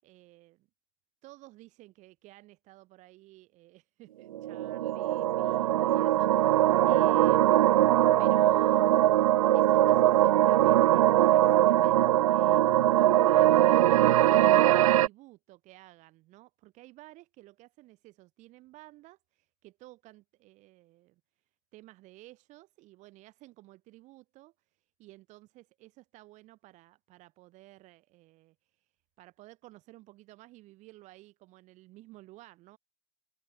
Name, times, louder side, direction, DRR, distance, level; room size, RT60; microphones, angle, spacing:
voice 1, 0.0-0.7 1.2-7.7 8.2-21.2 21.7-24.5 25.0-28.9 29.2-32.8, right 18 dB, 40° right, 5.8 m, -54 dB
sound 1, 4.3-15.1, right 13 dB, 65° right, 0.4 m, -22 dB
figure-of-eight pair, 95°, 19 cm